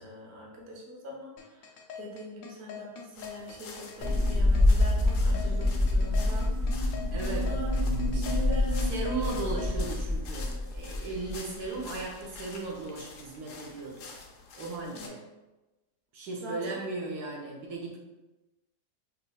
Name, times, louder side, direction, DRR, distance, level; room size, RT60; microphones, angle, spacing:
voice 1, 0.0-6.8 7.2-7.7 8.0-8.8 9.2-9.4 11.2-11.3 14.9-15.1 16.4-16.8, left 1 dB, 50° right, -2 dB, 0.9 m, -43 dB
sound 1, 1.4-9.7, left 7 dB, 70° left, 1.1 m, -43 dB
sound 2, 3.1-15.1, left 4 dB, 85° left, 1.2 m, -48 dB
sound 3, 4.0-11.4 11.6-11.8 12.3-12.4, left 1 dB, 20° right, 0.7 m, -26 dB
voice 2, 7.1-7.5 8.9-14.1 14.6-15.2 16.1-18.0, right 3 dB, 75° right, -2 dB, 1.3 m, -36 dB
5.3 x 3.1 x 2.2 m, 1.0 s
omnidirectional pair, 1.7 m